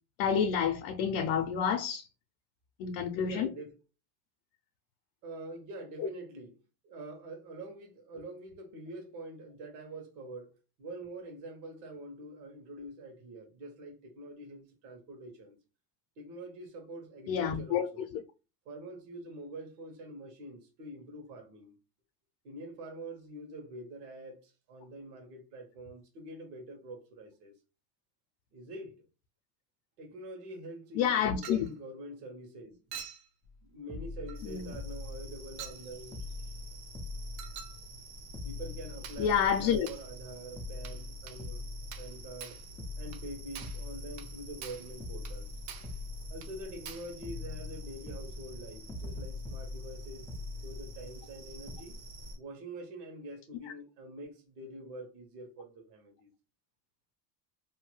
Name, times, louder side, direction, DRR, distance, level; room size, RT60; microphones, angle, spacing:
voice 1, 0.2-2.1 2.8-3.5 17.3-17.9 31.0-31.7 34.4-34.7 39.2-39.9, left 8 dB, 65° left, 0.6 m, -28 dB
voice 2, 3.1-3.8 5.2-15.6 16.2-18.1 18.6-21.8 22.4-27.5 28.5-29.0 30.0-32.8 33.6-36.2 38.4-41.7 42.0-42.6 43.0-45.9 46.3-50.3 50.6-52.0 52.4-56.3, right 1 dB, 65° right, 1.3 m, -45 dB
Chink clink, 31.4-31.7 32.9-33.3 34.3-34.4 35.6-35.8 37.4-37.8 39.0-39.3 39.9-40.1 40.8-41.0 41.3-41.4 41.9-42.1 42.4-42.6 43.1-43.2 43.5-43.8 44.2-44.3 44.6-44.9 45.2-45.4 45.7-46.0 46.4-46.5 46.8-47.1, right 8 dB, 45° right, 0.7 m, -46 dB
sound 1, 33.4-33.6 33.9-35.8 36.1-38.0 38.3-40.2 40.6-42.5 42.8-44.7 45.0-46.9 47.2-51.4 51.7-51.8, left 3 dB, 10° left, 0.3 m, -43 dB
sound 2, 34.3-52.4, right 1 dB, 80° right, 1.5 m, -49 dB
2.8 x 2.2 x 3.1 m
supercardioid pair, 110°, 49 cm